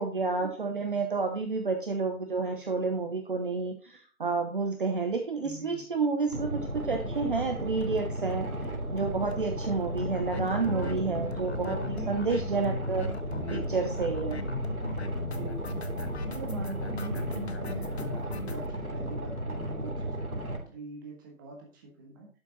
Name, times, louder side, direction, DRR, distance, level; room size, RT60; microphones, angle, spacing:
voice 1, 0.0-8.5 8.9-13.0 13.5-14.4, right 4 dB, 35° right, 4 dB, 1.1 m, -30 dB
voice 2, 5.4-5.9 10.3-11.4 11.9-12.4 13.3-13.7 15.2-15.8 16.2-22.3, right 3 dB, 15° right, 1 dB, 1.6 m, -42 dB
Boat Water vehicle, 6.3-20.6, right 1 dB, 80° right, 3.0 m, -34 dB
sound 1, 7.8-8.0 8.3-8.4 8.6-8.7 9.0-9.1 9.3-18.7, left 5 dB, 50° left, 0.9 m, -40 dB
11.5 x 5.8 x 4.1 m, 0.39 s
figure-of-eight pair, 150°, 43 cm